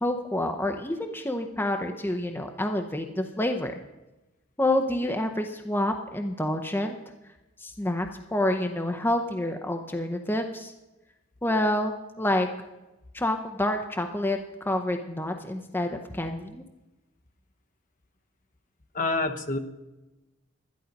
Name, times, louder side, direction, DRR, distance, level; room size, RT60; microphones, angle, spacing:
voice 1, 0.0-3.8 4.6-7.0 7.6-10.7 11.4-12.5 13.1-16.6, left 1 dB, 10° left, 5 dB, 0.7 m, -28 dB
voice 2, 18.9-19.6, left 2 dB, 40° left, 6 dB, 0.9 m, -27 dB
11.5 x 11.5 x 5.2 m, 1.0 s
head